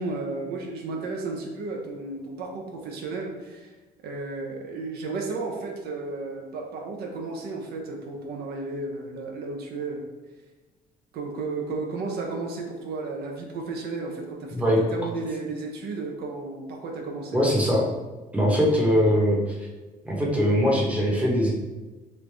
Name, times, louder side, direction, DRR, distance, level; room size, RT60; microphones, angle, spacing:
voice 1, 0.0-3.7 4.0-10.1 11.1-17.4, right 3 dB, 70° right, 1 dB, 0.6 m, -33 dB
voice 2, 17.3-17.8 18.3-19.5 20.0-21.5, equal, 10° right, -3 dB, 0.8 m, -21 dB
3.2 x 2.5 x 3.2 m, 1.2 s
cardioid pair, 110°, 17 cm